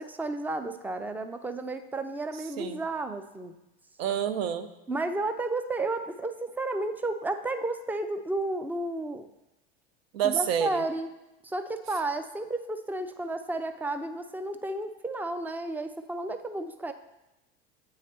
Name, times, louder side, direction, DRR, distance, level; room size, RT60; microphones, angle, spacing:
voice 1, 0.0-3.5 4.9-9.3 10.2-11.1 11.4-16.9, right 2 dB, 5° right, 8 dB, 0.3 m, -32 dB
voice 2, 4.0-4.7 10.1-10.8, right 9 dB, 80° right, 10 dB, 0.6 m, -28 dB
8.4 x 3.2 x 4.3 m, 0.97 s
hypercardioid pair, 95°, 30 cm